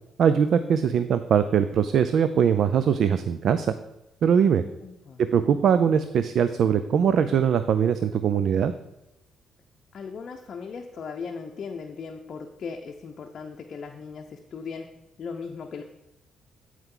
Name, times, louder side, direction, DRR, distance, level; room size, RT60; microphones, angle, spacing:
voice 1, 0.2-3.7 4.2-4.6 5.2-8.7, right 7 dB, 65° right, 11 dB, 0.4 m, -21 dB
voice 2, 4.6-5.2 9.9-14.9 15.2-15.8, left 5 dB, 55° left, 2 dB, 0.6 m, -38 dB
13.5 x 4.7 x 3.8 m, 0.91 s
cardioid pair, 90°, 0 cm